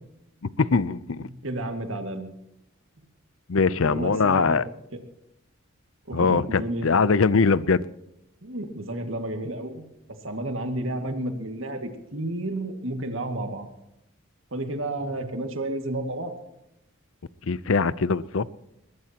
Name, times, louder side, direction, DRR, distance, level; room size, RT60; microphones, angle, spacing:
voice 1, 0.6-1.3 3.5-4.6 6.1-7.8 17.4-18.5, left 4 dB, 70° left, 18 dB, 0.6 m, -22 dB
voice 2, 1.2-2.3 3.8-4.6 4.9-5.0 6.1-6.9 8.4-9.9 10.2-13.7 14.5-16.3, right 1 dB, 65° right, 6 dB, 2.2 m, -31 dB
21.0 x 20.0 x 3.0 m, 0.86 s
head